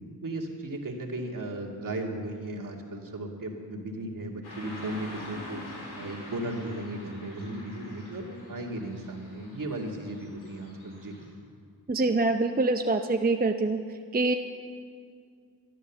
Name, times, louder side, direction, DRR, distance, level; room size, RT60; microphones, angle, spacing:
voice 1, 0.2-5.6 6.0-11.2, right 1 dB, 55° right, 0 dB, 2.2 m, -36 dB
Car passing by / Traffic noise roadway noise, 4.4-11.3, left 1 dB, 85° left, 3.9 m, -45 dB
voice 2, 11.9-13.8 14.1-14.3, right 3 dB, 25° right, 5 dB, 0.6 m, -25 dB
12.5 x 11.0 x 7.2 m, 2.2 s
cardioid pair, 65°, 38 cm